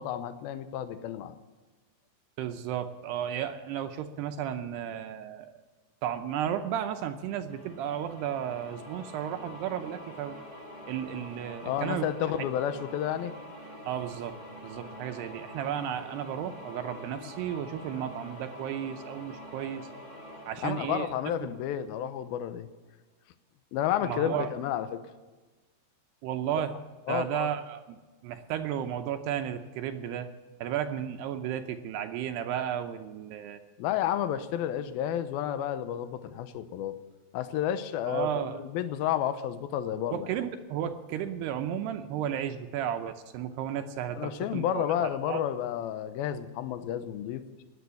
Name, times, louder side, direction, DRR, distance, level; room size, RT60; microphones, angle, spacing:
voice 1, 0.0-1.4 11.6-13.3 20.6-22.7 23.7-25.0 27.1-27.5 33.8-36.9 37.3-40.3 44.1-47.6, left 10 dB, 75° left, 11 dB, 2.4 m, -31 dB
voice 2, 2.4-5.6 6.0-10.4 10.9-12.1 13.9-14.4 14.6-19.9 20.5-21.1 24.0-24.5 26.2-26.7 27.1-30.3 30.6-33.6 38.1-38.6 40.1-45.5, right 10 dB, 80° right, 7 dB, 2.7 m, -33 dB
sound 1, 7.5-22.1, equal, 20° left, 1.2 m, -46 dB
17.0 x 10.5 x 7.0 m, 1.3 s
omnidirectional pair, 5.1 m